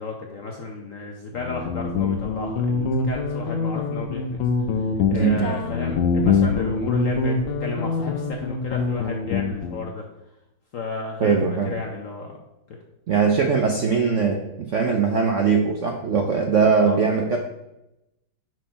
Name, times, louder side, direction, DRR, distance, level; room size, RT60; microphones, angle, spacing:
voice 1, 0.0-4.2 4.7-10.1 10.7-12.4 16.8-17.0, left 4 dB, 65° left, 2 dB, 0.8 m, -33 dB
Guitar, 1.3-9.8, left 5 dB, 90° left, 1.6 m, -24 dB
voice 2, 5.1-5.5 11.2-11.7 13.1-17.4, right 5 dB, 70° right, 2 dB, 0.7 m, -21 dB
6.1 x 4.4 x 5.7 m, 0.91 s
omnidirectional pair, 2.1 m